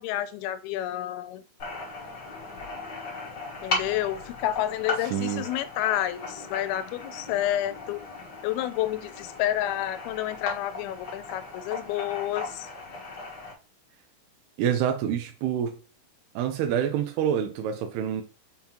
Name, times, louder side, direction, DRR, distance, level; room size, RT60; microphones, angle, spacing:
voice 1, 0.0-1.4 3.6-8.0 8.4-12.7, left 13 dB, 85° left, 2.5 m, -29 dB
sound 1, 1.6-13.5, left 3 dB, 60° left, 1.1 m, -37 dB
voice 2, 5.1-5.5 14.6-15.8 16.4-18.2, right 9 dB, 90° right, 2.7 m, -27 dB
7.2 x 5.5 x 2.9 m
omnidirectional pair, 4.4 m